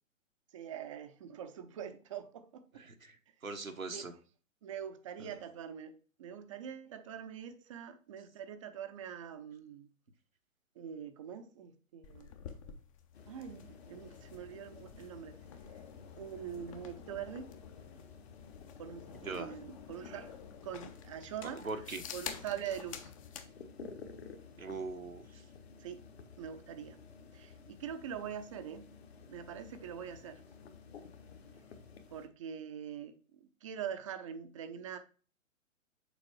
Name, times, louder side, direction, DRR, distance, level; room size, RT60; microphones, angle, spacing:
voice 1, 0.5-2.8 3.9-4.0 4.6-9.9 10.8-12.3 13.3-15.4 16.1-17.5 18.8-20.3 20.6-21.6 22.1-23.1 25.8-26.0 26.4-27.0 27.3-28.9 29.3-30.4 32.1-35.0, right 8 dB, 25° right, 0.6 m, -44 dB
voice 2, 2.8-3.2 3.4-4.1 19.2-19.5 21.6-22.0 24.6-25.4, right 3 dB, 85° right, 1.1 m, -41 dB
sound 1, 12.0-23.5, left 8 dB, 25° left, 0.6 m, -50 dB
sound 2, 13.1-32.3, left 5 dB, 50° left, 1.2 m, -54 dB
6.9 x 4.4 x 4.5 m
figure-of-eight pair, 120°, 40 cm